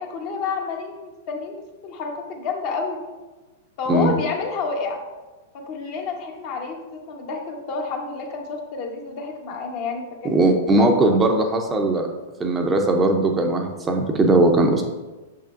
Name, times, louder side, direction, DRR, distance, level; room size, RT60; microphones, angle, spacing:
voice 1, 0.0-3.1 3.8-5.0 5.5-11.2, left 4 dB, 50° left, 1 dB, 1.2 m, -30 dB
voice 2, 10.2-12.1 12.4-14.8, right 2 dB, 20° right, 3 dB, 0.7 m, -19 dB
6.6 x 5.6 x 2.6 m, 1.2 s
hypercardioid pair, 105°, 0 cm